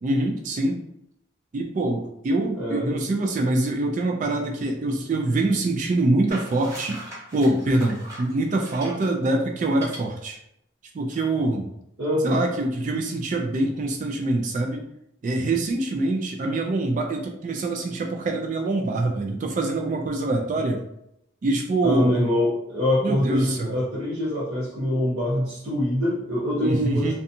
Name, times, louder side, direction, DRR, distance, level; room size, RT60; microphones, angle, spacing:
voice 1, 0.0-0.8 1.5-7.0 7.3-10.4 10.9-11.7 12.2-14.8 15.2-20.8 21.4-22.2 23.0-23.8 26.6-27.1, right 2 dB, 45° right, 2 dB, 0.3 m, -24 dB
voice 2, 2.6-3.0 12.0-12.4 21.8-27.1, left 1 dB, 90° right, -8 dB, 0.7 m, -24 dB
sound 1, 6.3-9.1 9.7-10.0, right 1 dB, 20° right, 1.1 m, -40 dB
2.7 x 2.2 x 2.6 m, 0.78 s
head